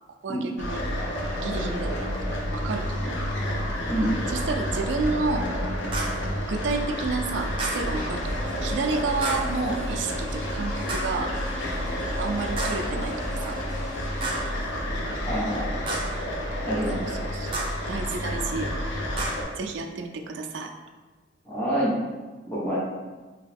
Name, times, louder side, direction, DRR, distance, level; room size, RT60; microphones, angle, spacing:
voice 1, 0.2-0.8 1.3-3.5 4.3-5.5 6.2-11.4 11.8-13.6 16.9-18.7 19.6-20.7, right 4 dB, 70° right, 4 dB, 0.4 m, -31 dB
sound 1, 0.6-19.4, equal, 85° left, 0.7 m, -30 dB
voice 2, 3.9-4.2 15.3-15.8 16.6-17.0 21.4-21.9 22.5-22.8, equal, 10° left, -10 dB, 0.8 m, -27 dB
sound 2, 5.9-6.3 7.6-7.9 9.2-9.6 10.9-11.2 12.6-12.9 14.2-14.6 15.9-16.2 17.5-17.9 19.2-19.5, right 2 dB, 30° right, 0.7 m, -31 dB
Insect, 7.1-15.3, equal, 45° left, 1.0 m, -40 dB
3.1 x 2.9 x 3.3 m, 1.3 s
head